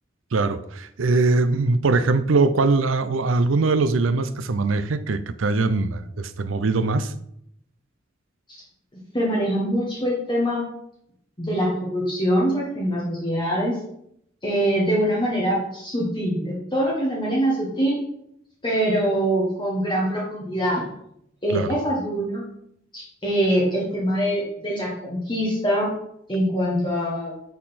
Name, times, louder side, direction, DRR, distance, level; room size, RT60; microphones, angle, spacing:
voice 1, 0.3-7.1 21.5-21.8, right 3 dB, 90° right, 0.5 m, -22 dB
voice 2, 9.1-10.6 11.4-13.8 14.4-18.0 18.6-20.8 21.4-22.4 22.9-25.9 26.3-27.3, equal, 25° left, 1.4 m, -23 dB
8.6 x 3.9 x 4.2 m
head